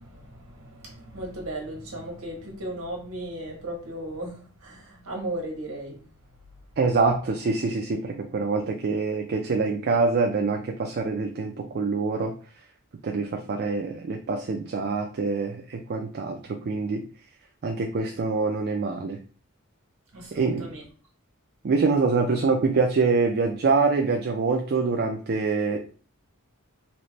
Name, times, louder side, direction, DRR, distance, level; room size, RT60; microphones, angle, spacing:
voice 1, 0.0-6.0 20.1-20.8, right 1 dB, 80° right, 1.3 m, -36 dB
voice 2, 6.8-12.3 13.0-17.0 17.6-19.2 20.3-20.7 21.6-25.8, right 4 dB, 50° right, 0.4 m, -25 dB
4.1 x 2.1 x 3.1 m
head